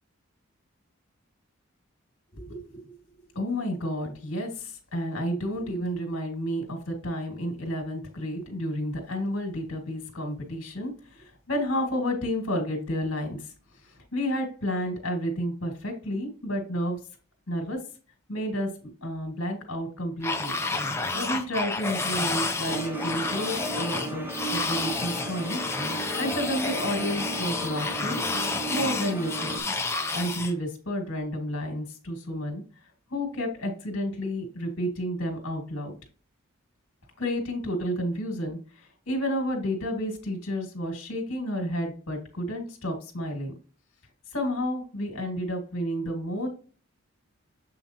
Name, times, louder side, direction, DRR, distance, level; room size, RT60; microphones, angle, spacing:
voice 1, 2.3-3.0 3.3-13.5 13.8-17.0 17.5-17.8 18.3-18.7 19.0-20.5 21.1-28.2 28.7-29.6 30.1-32.6 33.1-35.9 37.2-43.5 44.3-46.5, equal, 60° left, 1 dB, 2.1 m, -31 dB
sound 1, 20.2-30.5, left 3 dB, 10° left, 0.6 m, -30 dB
sound 2, 22.7-29.6, right 2 dB, 10° right, 1.0 m, -35 dB
7.3 x 5.6 x 2.8 m, 0.37 s
head